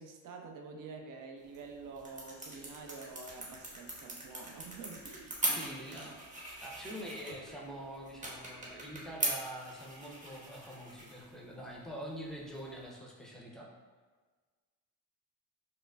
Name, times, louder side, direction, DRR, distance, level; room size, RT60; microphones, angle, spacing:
voice 1, 0.0-6.0 7.1-7.4, right 4 dB, 55° right, 2 dB, 0.6 m, -48 dB
sound 1, 1.4-12.9, right 1 dB, 20° right, 0.9 m, -41 dB
voice 2, 5.5-13.7, right 1 dB, ahead, -3 dB, 0.6 m, -45 dB
4.9 x 2.1 x 2.3 m, 1.4 s
cardioid pair, 100°, 39 cm